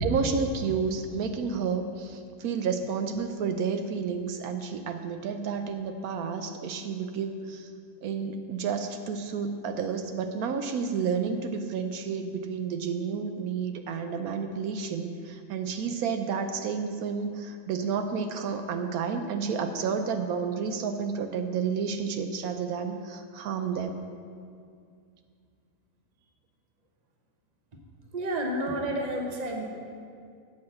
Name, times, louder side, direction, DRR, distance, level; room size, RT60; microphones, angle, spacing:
voice 1, 0.0-7.7 8.0-24.0, right 6 dB, 80° right, 7 dB, 1.1 m, -31 dB
voice 2, 28.1-29.6, right 1 dB, 30° right, 2 dB, 1.0 m, -30 dB
8.6 x 5.8 x 7.6 m, 2.3 s
omnidirectional pair, 1.6 m